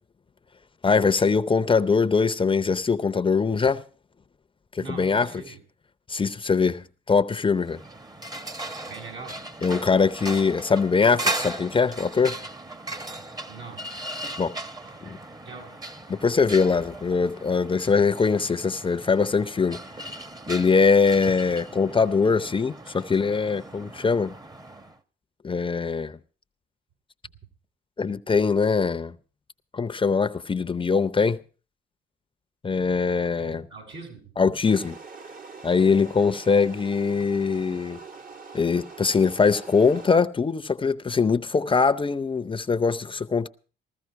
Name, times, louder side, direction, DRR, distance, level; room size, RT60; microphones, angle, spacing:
voice 1, 0.8-3.8 4.7-5.3 6.1-7.8 9.6-12.4 14.4-14.5 15.0-15.2 16.1-19.8 20.5-24.3 25.4-26.2 28.0-29.1 29.7-31.4 32.6-33.7 34.4-35.0 35.6-38.0 38.5-43.5, left 5 dB, 25° left, 0.6 m, -22 dB
voice 2, 4.8-5.6 8.8-9.4 13.5-13.9 14.8-15.0 15.5-15.8 33.1-34.4, right 4 dB, 75° right, 6.9 m, -42 dB
sound 1, 7.5-25.0, right 2 dB, 20° right, 1.1 m, -37 dB
sound 2, 34.6-40.1, right 4 dB, 45° right, 1.3 m, -43 dB
15.5 x 14.0 x 4.6 m
cardioid pair, 90°, 20 cm